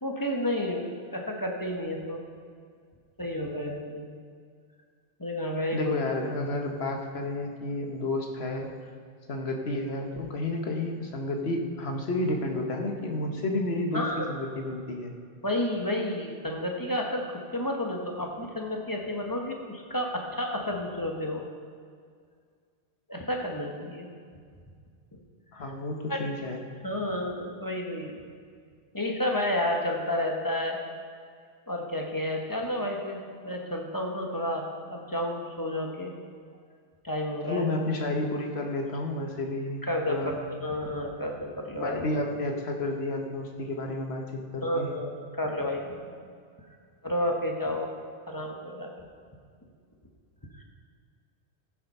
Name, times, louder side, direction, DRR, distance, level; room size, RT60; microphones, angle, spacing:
voice 1, 0.0-2.2 3.2-4.1 5.2-6.0 13.9-14.3 15.4-17.2 17.5-21.4 23.1-24.1 26.1-26.2 26.8-28.2 28.9-30.8 31.7-33.2 33.4-34.6 34.9-36.1 37.0-37.6 39.8-42.1 44.6-45.1 45.4-46.1 47.0-47.9 48.3-48.9 50.5-50.6, left 1 dB, 20° left, 0 dB, 1.2 m, -31 dB
voice 2, 5.7-8.7 9.3-15.1 25.5-26.6 37.4-40.3 41.7-44.9, left 2 dB, 75° left, 3 dB, 1.4 m, -31 dB
14.5 x 7.5 x 5.5 m, 2.1 s
omnidirectional pair, 1.1 m